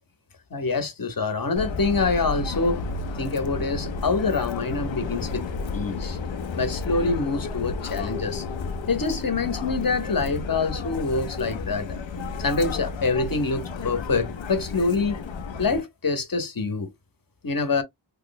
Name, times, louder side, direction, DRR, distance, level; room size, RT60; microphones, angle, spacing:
voice 1, 0.5-2.8 3.2-5.5 5.7-6.2 6.6-8.4 8.9-12.0 12.4-15.2 15.6-16.9 17.4-17.8, left 4 dB, 50° left, 0.9 m, -25 dB
Subway metro underground, 1.6-15.8, left 4 dB, 80° left, 0.6 m, -32 dB
3.0 x 2.1 x 3.9 m
wide cardioid pair, 60°, 44 cm